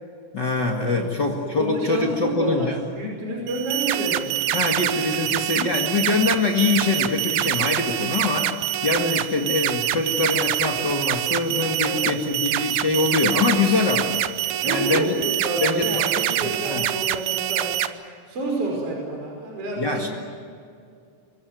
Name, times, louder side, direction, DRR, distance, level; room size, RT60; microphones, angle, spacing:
voice 1, 0.3-2.8 4.5-14.2 14.6-15.1 15.6-16.8 19.8-20.1, left 3 dB, 85° left, 0 dB, 0.9 m, -24 dB
voice 2, 0.9-4.3 11.8-12.4 14.5-17.7 18.3-20.1, right 2 dB, 30° right, 0 dB, 6.0 m, -29 dB
sound 1, 3.5-17.9, right 13 dB, 80° right, 3.2 m, -25 dB
25.5 x 23.0 x 9.3 m, 2.3 s
omnidirectional pair, 5.6 m